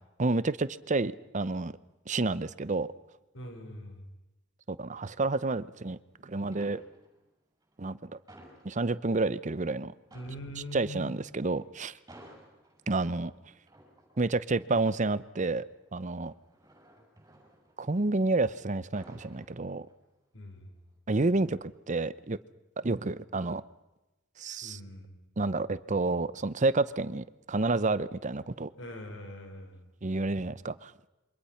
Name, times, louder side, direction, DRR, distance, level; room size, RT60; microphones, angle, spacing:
voice 1, 0.2-1.7 2.1-2.9 4.7-6.8 7.8-8.2 8.6-9.9 10.7-12.0 12.9-13.3 14.2-15.7 15.9-16.3 17.8-19.9 21.1-22.4 22.8-23.6 24.4-24.8 25.4-28.7 30.0-30.9, right 3 dB, 40° right, 16 dB, 0.8 m, -29 dB
voice 2, 3.3-4.1 10.1-11.1 20.3-20.9 24.6-25.2 28.8-29.9, left 1 dB, 70° left, 5 dB, 5.3 m, -43 dB
sound 1, 5.7-6.1 6.4-7.3 7.6-9.4 9.7-9.8 10.0-18.4 18.7-20.2 20.6-20.8, right 1 dB, 20° right, 6.8 m, -57 dB
27.5 x 24.5 x 5.8 m, 1.0 s
head